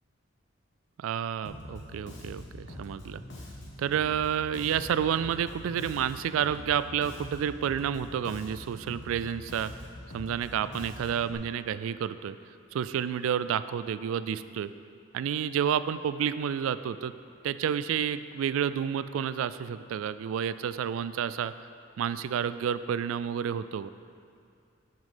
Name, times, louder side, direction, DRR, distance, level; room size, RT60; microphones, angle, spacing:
voice 1, 1.0-3.2 3.8-9.7 10.1-12.4 12.7-14.7 15.1-17.1 17.4-21.5 22.0-23.9, right 8 dB, 80° right, 14 dB, 0.3 m, -30 dB
Bass guitar, 1.4-11.3, left 1 dB, 60° left, 1.4 m, -44 dB
7.9 x 5.3 x 5.6 m, 2.3 s
head